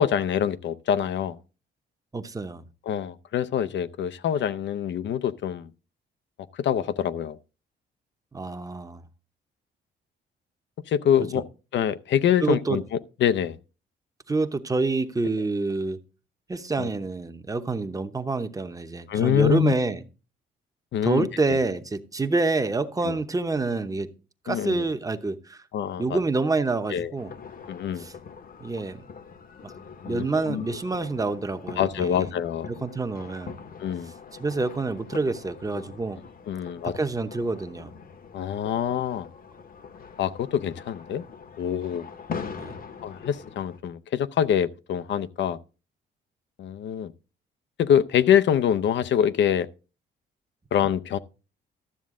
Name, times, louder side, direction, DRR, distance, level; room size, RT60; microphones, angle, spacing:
voice 1, 0.0-1.4 2.9-5.7 6.5-7.4 10.9-11.4 11.7-12.8 13.2-13.6 16.8-16.9 19.1-19.7 20.9-21.6 23.0-23.2 24.5-24.8 25.7-26.2 26.9-27.1 27.7-28.1 30.0-30.7 31.8-32.7 33.8-34.1 36.5-36.9 38.3-39.3 40.2-41.2 41.6-42.1 43.0-45.6 46.6-47.1 47.8-49.7 50.7-51.2, left 9 dB, 65° left, 0.6 m, -25 dB
voice 2, 2.1-2.6 8.3-9.0 11.3-11.4 12.4-12.8 14.3-16.0 16.5-20.0 21.0-24.1 24.4-25.6 26.0-27.3 28.0-28.1 28.6-29.0 29.6-29.7 30.0-32.3 32.7-33.5 34.4-36.2 36.8-37.9 42.4-42.8, right 3 dB, 15° right, 0.9 m, -27 dB
sound 1, 27.2-43.8, left 6 dB, 45° left, 1.0 m, -42 dB
12.5 x 7.3 x 3.7 m
cardioid pair, 90°, 20 cm